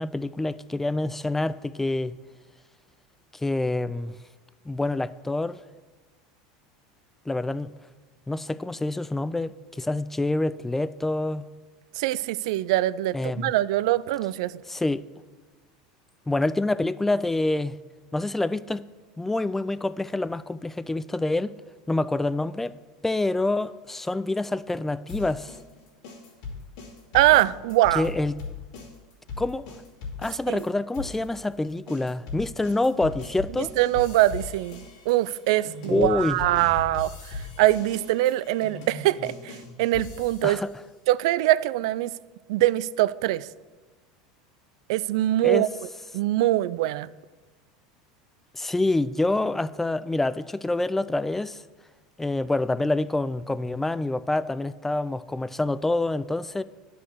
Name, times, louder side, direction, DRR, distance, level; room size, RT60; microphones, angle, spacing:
voice 1, 0.0-2.1 3.3-4.1 4.7-5.6 7.3-7.7 8.3-11.4 13.1-13.5 14.7-15.0 16.3-17.7 18.1-18.8 19.2-21.5 21.9-22.7 23.0-25.6 27.9-28.3 29.4-29.8 30.2-33.7 35.9-36.4 40.4-40.7 45.4-45.7 48.5-51.6 52.2-56.6, left 2 dB, 10° left, 0.3 m, -26 dB
voice 2, 12.0-14.6 27.1-28.1 30.5-30.6 33.8-40.6 41.1-42.1 42.5-43.5 44.9-45.7 46.1-47.1, right 16 dB, 70° right, 0.3 m, -23 dB
sound 1, 25.1-30.7 30.9-40.7, left 4 dB, 75° left, 2.6 m, -39 dB
9.9 x 5.3 x 6.4 m
hypercardioid pair, 100°, 3 cm